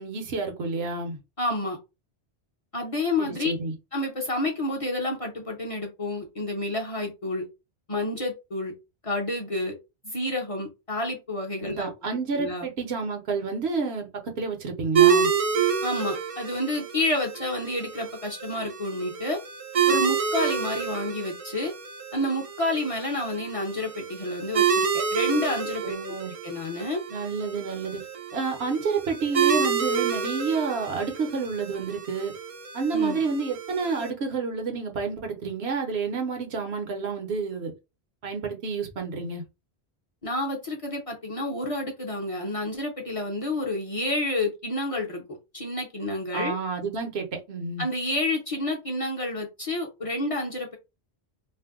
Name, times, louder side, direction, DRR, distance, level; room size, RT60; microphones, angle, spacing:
voice 1, 0.0-1.2 3.2-3.7 11.6-14.1 14.4-15.3 25.8-26.3 27.1-28.0 28.3-32.3 32.7-37.7 38.2-39.4 46.3-47.9, right 4 dB, 70° right, 1.0 m, -29 dB
voice 2, 1.4-1.8 2.7-3.5 3.9-7.4 7.9-8.7 9.0-9.8 10.0-11.9 12.3-12.7 15.8-19.4 19.9-21.7 22.1-26.0 26.4-27.0 32.9-33.2 40.2-45.2 45.5-46.5 47.8-50.8, left 1 dB, 35° left, 0.7 m, -29 dB
sound 1, 14.9-34.1, right 7 dB, 50° right, 0.4 m, -28 dB
2.6 x 2.1 x 3.5 m
omnidirectional pair, 1.1 m